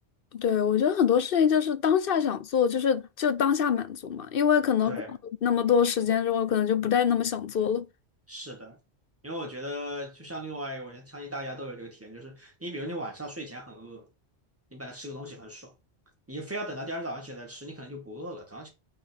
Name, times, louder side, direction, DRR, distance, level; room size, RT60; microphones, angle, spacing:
voice 1, 0.3-5.0 5.4-7.8, left 8 dB, 60° left, 0.8 m, -24 dB
voice 2, 4.9-5.2 8.3-8.8 9.2-14.1 14.7-15.7 16.3-18.7, equal, 10° right, 2.1 m, -38 dB
8.8 x 4.0 x 3.6 m
omnidirectional pair, 1.2 m